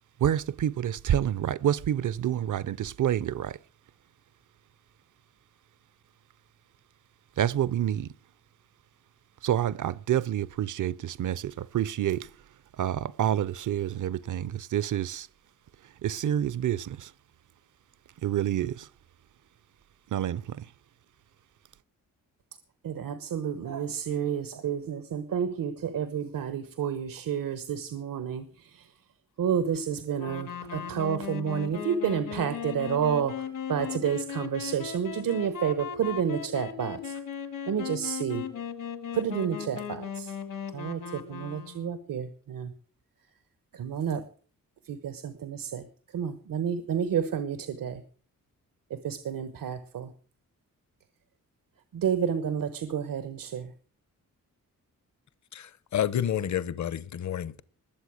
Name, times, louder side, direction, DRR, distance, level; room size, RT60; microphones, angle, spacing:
voice 1, 0.2-3.6 7.4-8.1 9.4-12.3 12.8-15.3 16.0-17.1 18.2-18.8 20.1-20.6, right 10 dB, 65° right, 0.6 m, -28 dB
voice 2, 22.8-28.9 29.4-37.2 37.7-38.4 39.1-40.4 40.7-42.7 43.7-44.2 44.8-48.0 48.9-50.1 51.9-53.7, right 8 dB, 90° right, 1.2 m, -30 dB
sound 1, 30.2-42.0, left 7 dB, 80° left, 1.9 m, -37 dB
voice 3, 55.5-57.6, left 10 dB, 60° left, 0.8 m, -30 dB
20.5 x 8.0 x 6.3 m
wide cardioid pair, 160°, 33 cm